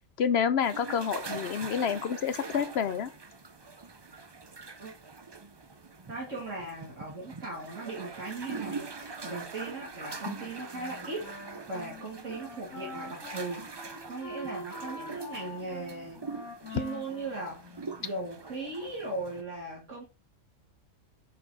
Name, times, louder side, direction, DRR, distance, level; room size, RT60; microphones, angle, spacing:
voice 1, 0.2-3.1, left 7 dB, 60° left, 0.8 m, -28 dB
sound 1, 0.6-19.4, right 4 dB, 30° right, 0.5 m, -43 dB
voice 2, 6.1-11.3 11.7-16.2 16.7-17.7 18.0-20.0, right 2 dB, 65° right, 2.5 m, -38 dB
Wind instrument woodwind instrument, 10.7-18.2, left 2 dB, 90° left, 2.3 m, -45 dB
6.9 x 4.9 x 4.7 m
omnidirectional pair, 1.4 m